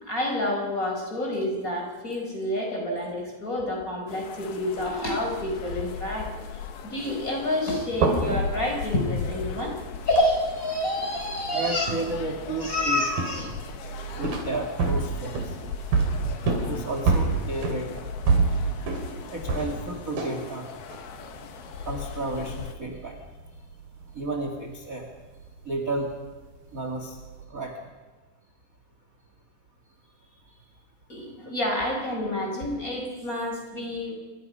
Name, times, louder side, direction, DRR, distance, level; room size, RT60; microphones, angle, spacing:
voice 1, 0.0-6.3 6.8-9.8 10.1-12.0 12.6-13.5 14.0-14.3 31.1-34.1, left 1 dB, 20° left, 1 dB, 5.4 m, -28 dB
sound 1, 4.1-22.7, left 6 dB, 90° left, 3.6 m, -38 dB
sound 2, 7.9-20.5 20.7-21.9 22.2-24.6 24.8-26.4 26.8-27.4, right 4 dB, 70° right, 5.0 m, -29 dB
voice 2, 11.5-13.0 14.2-15.6 16.6-18.1 19.3-20.8 21.8-23.2 24.1-25.1 25.7-26.1 26.7-27.2 27.5-27.8, right 2 dB, 30° right, 3 dB, 1.8 m, -32 dB
28.0 x 24.0 x 5.5 m, 1.3 s
omnidirectional pair, 4.3 m